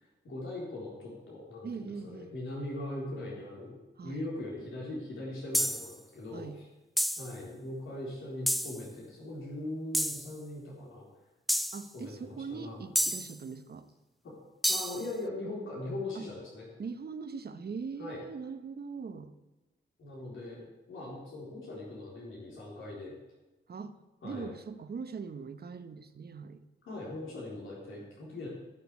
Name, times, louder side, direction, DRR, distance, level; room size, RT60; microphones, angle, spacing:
voice 1, 0.2-6.7 7.2-11.1 11.9-12.8 14.2-14.3 14.7-16.7 18.0-18.2 20.0-20.6 20.9-23.2 24.2-24.5 26.9-28.5, left 1 dB, 85° left, -4 dB, 3.8 m, -40 dB
voice 2, 1.6-2.3 4.0-4.3 6.3-6.6 11.7-13.9 16.1-16.3 16.8-19.3 23.7-24.0 24.2-26.6, right 5 dB, 50° right, 9 dB, 1.1 m, -41 dB
sound 1, 5.5-5.9 7.0-7.3 8.5-8.8 9.9-10.3 11.5-11.8 13.0-13.4 14.6-15.1, equal, ahead, 0.5 m, -29 dB
15.0 x 6.7 x 8.4 m, 1.1 s
wide cardioid pair, 95°, 20 cm